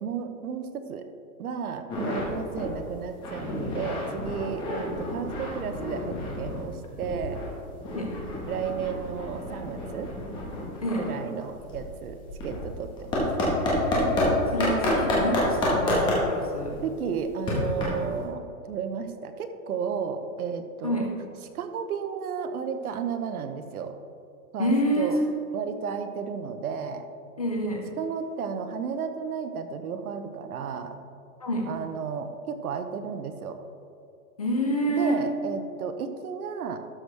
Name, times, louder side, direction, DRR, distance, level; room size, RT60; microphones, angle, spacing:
voice 1, 0.0-1.0 1.4-7.4 8.5-10.1 10.9-13.3 16.8-21.1 21.5-23.9 24.5-25.2 25.5-27.1 28.0-31.0 31.7-33.6 34.9-36.8, right 6 dB, 75° right, 8 dB, 1.0 m, -33 dB
sound 1, 1.9-2.3 2.6-2.7 3.1-6.7 7.0-14.3 14.6-18.2, left 1 dB, 10° left, 1.2 m, -30 dB
voice 2, 14.5-16.8 20.8-21.1 24.6-25.3 27.4-27.9 31.4-31.7 34.4-35.2, equal, 30° left, 1 dB, 0.4 m, -27 dB
12.0 x 6.2 x 3.3 m, 2.5 s
hypercardioid pair, 170°, 44 cm